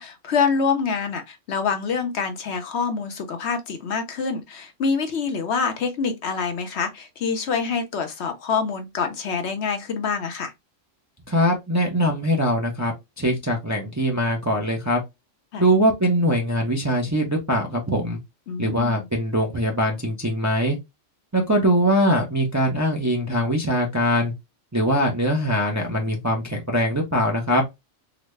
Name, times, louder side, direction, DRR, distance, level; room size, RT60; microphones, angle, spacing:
voice 1, 0.0-10.5 15.5-15.6 18.5-19.1, left 5 dB, 60° left, 0.9 m, -26 dB
voice 2, 11.3-15.0 15.6-18.2 18.6-20.8 21.3-24.3 24.7-27.6, equal, 20° right, 0.5 m, -22 dB
3.9 x 2.1 x 3.1 m
omnidirectional pair, 1.3 m